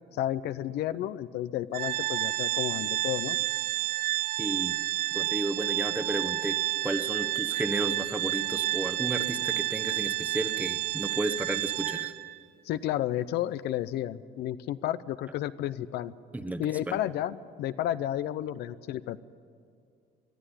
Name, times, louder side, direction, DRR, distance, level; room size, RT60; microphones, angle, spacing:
voice 1, 0.1-3.4 12.6-16.1 16.6-19.2, left 12 dB, 75° left, 14 dB, 0.6 m, -32 dB
Organ, 1.7-12.4, right 16 dB, 65° right, 0.7 m, -30 dB
voice 2, 4.4-4.8 5.1-6.6 6.8-12.1 16.3-17.0, right 1 dB, 10° right, 10 dB, 1.1 m, -33 dB
22.0 x 12.0 x 9.8 m, 2.3 s
cardioid pair, 110°, 17 cm